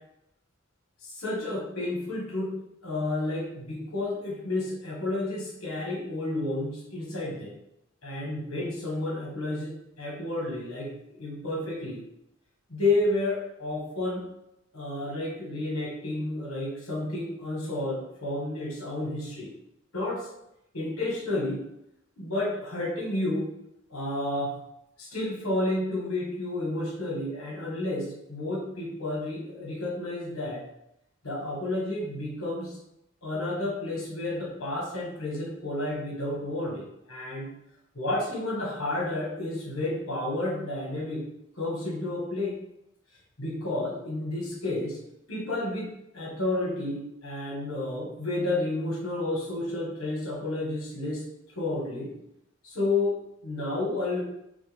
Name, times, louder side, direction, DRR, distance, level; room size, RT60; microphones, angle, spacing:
voice 1, 1.1-2.5 2.8-7.5 8.0-12.0 12.7-14.2 14.7-19.5 19.9-20.3 20.7-21.6 22.2-23.5 23.9-24.5 25.0-30.6 31.2-32.8 33.2-37.5 37.9-41.2 41.5-42.6 43.4-45.0 45.3-51.2 51.5-52.1 52.6-54.2, left 2 dB, 80° left, -3 dB, 1.4 m, -31 dB
4.0 x 2.3 x 3.4 m, 0.81 s
head